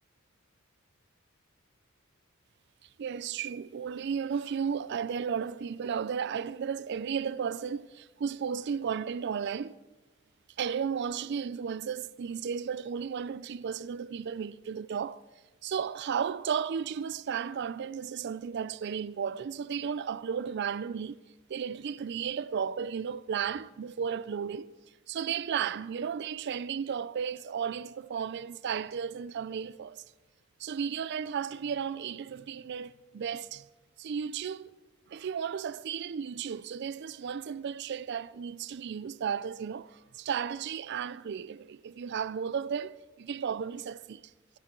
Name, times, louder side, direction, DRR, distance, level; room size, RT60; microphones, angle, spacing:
voice 1, 3.0-9.8 10.6-15.2 15.6-21.2 21.5-24.8 25.1-30.0 30.6-33.7 34.0-34.7 35.1-44.2, right 7 dB, 55° right, 0.4 m, -34 dB
16.5 x 15.0 x 3.8 m
head